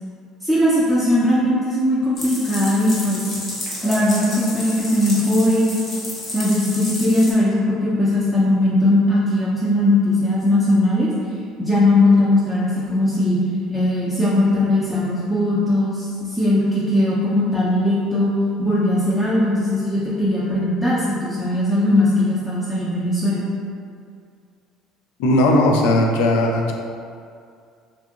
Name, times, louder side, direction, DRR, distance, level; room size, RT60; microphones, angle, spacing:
voice 1, 0.4-3.2 3.8-5.7 6.3-11.1 11.6-13.4 13.7-18.3 18.6-23.4, left 1 dB, ahead, -10 dB, 0.5 m, -19 dB
sound 1, 2.2-7.3, left 1 dB, 40° left, 0.9 m, -31 dB
voice 2, 25.2-26.7, left 1 dB, 80° left, 1 dB, 0.3 m, -17 dB
2.6 x 2.5 x 2.5 m, 2.3 s
supercardioid pair, 85°, 0 cm